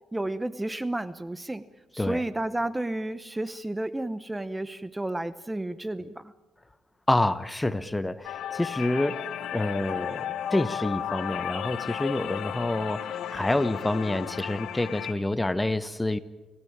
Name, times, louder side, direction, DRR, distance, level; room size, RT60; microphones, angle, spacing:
voice 1, 0.1-1.6 1.9-6.3, right 1 dB, 10° right, 15 dB, 0.9 m, -32 dB
voice 2, 7.1-16.2, left 2 dB, 10° left, 15 dB, 1.0 m, -28 dB
sound 1, 8.2-15.1, left 9 dB, 75° left, 1.3 m, -34 dB
28.0 x 16.0 x 8.8 m, 1.2 s
cardioid pair, 90°, 0 cm